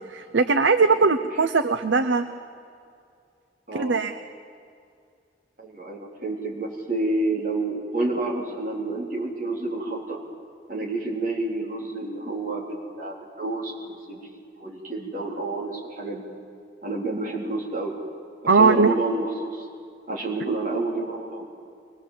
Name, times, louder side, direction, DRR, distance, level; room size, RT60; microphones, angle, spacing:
voice 1, 0.1-2.3 3.7-4.1 18.5-18.9, right 4 dB, 80° right, 9 dB, 0.7 m, -20 dB
voice 2, 5.6-10.2 10.7-16.3 16.8-18.0 18.5-19.7 20.1-21.5, right 2 dB, 45° right, -2 dB, 3.8 m, -29 dB
23.5 x 20.5 x 7.6 m, 2.3 s
head